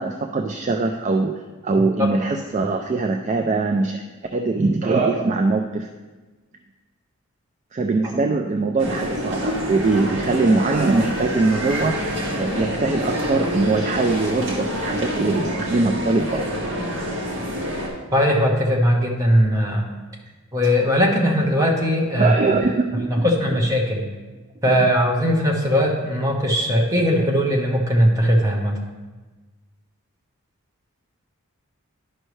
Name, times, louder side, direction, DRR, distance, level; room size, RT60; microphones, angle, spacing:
voice 1, 0.0-1.3 1.6-4.0 4.3-5.9 7.7-12.0 12.4-16.5 22.1-23.3, right 3 dB, 30° right, 4 dB, 0.3 m, -22 dB
voice 2, 2.0-2.3 18.1-19.9 20.5-22.3 23.1-24.0 24.6-28.7, equal, 15° right, -1 dB, 1.0 m, -19 dB
sound 1, 8.8-17.9, equal, 55° right, 1.7 m, -27 dB
11.0 x 5.4 x 3.2 m, 1.3 s
head